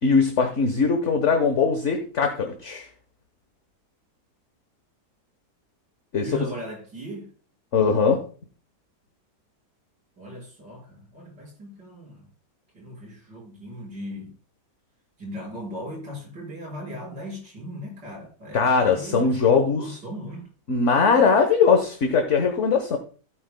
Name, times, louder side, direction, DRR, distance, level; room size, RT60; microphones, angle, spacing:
voice 1, 0.0-2.9 6.1-6.4 7.7-8.2 18.5-20.0 20.7-23.0, left 5 dB, 45° left, 1.3 m, -20 dB
voice 2, 6.2-7.3 10.2-12.3 12.7-14.4 15.2-18.6 18.9-20.5, equal, 75° right, 6.4 m, -38 dB
15.5 x 9.4 x 2.2 m
omnidirectional pair, 1.9 m